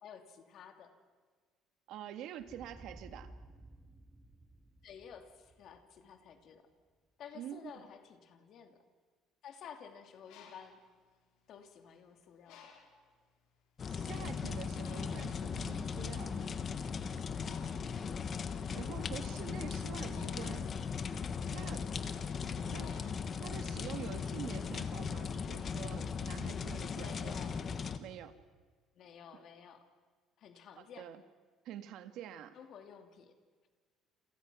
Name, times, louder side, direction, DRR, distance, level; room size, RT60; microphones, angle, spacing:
voice 1, 0.0-0.9 4.8-6.7 7.2-8.8 9.4-10.8 11.5-12.7 18.0-18.2 22.6-22.9 27.0-27.6 28.9-29.8 30.4-31.1 32.5-33.3, left 7 dB, 45° left, 6 dB, 2.7 m, -53 dB
voice 2, 1.9-3.3 7.3-7.8 13.9-16.5 18.7-20.7 21.5-21.9 22.7-27.6 28.0-28.4 29.3-29.4 30.8-31.2 31.7-32.6, right 10 dB, 60° right, 9 dB, 1.8 m, -47 dB
sound 1, 2.4-7.0, right 1 dB, 10° right, 3.6 m, -56 dB
Bird, 10.1-11.9 12.5-13.1 13.8-14.0 14.2-23.9, left 6 dB, 80° left, 4.8 m, -59 dB
sound 2, 13.8-28.0, left 6 dB, 25° left, 1.3 m, -38 dB
29.5 x 27.5 x 6.2 m, 1.5 s
cardioid pair, 175°, 0 cm